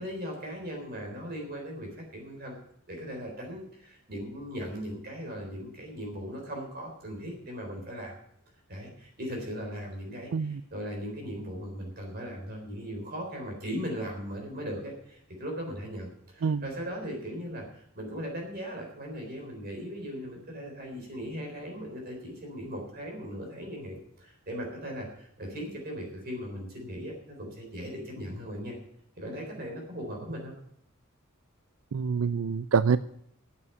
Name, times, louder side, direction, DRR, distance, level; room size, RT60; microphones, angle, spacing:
voice 1, 0.0-2.6 2.9-8.1 8.7-28.8 29.2-30.5, equal, 45° right, 0 dB, 3.9 m, -38 dB
voice 2, 31.9-33.0, right 6 dB, 75° right, 14 dB, 0.4 m, -26 dB
9.3 x 8.6 x 9.8 m, 0.69 s
head